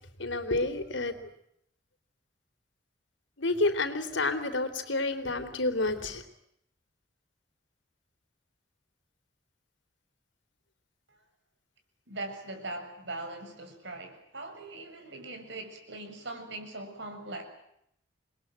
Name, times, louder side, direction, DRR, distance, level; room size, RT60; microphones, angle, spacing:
voice 1, 0.2-1.3 3.4-6.2, left 2 dB, 75° left, 8 dB, 3.6 m, -29 dB
voice 2, 12.1-17.4, right 2 dB, 70° right, 6 dB, 7.0 m, -41 dB
28.5 x 21.5 x 9.1 m, 0.76 s
head